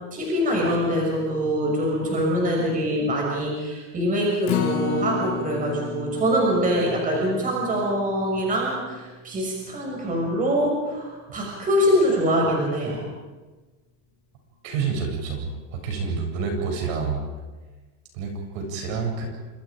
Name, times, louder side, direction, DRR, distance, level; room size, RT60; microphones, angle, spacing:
voice 1, 0.1-13.0, equal, 15° right, -2 dB, 6.4 m, -24 dB
Acoustic guitar, 4.5-10.8 11.2-11.3 11.7-11.8, left 7 dB, 35° left, 2.6 m, -33 dB
voice 2, 14.6-15.4 15.7-17.2 18.1-19.3, right 5 dB, 50° right, 2 dB, 7.8 m, -28 dB
28.5 x 27.5 x 5.2 m, 1.3 s
supercardioid pair, 160°, 48 cm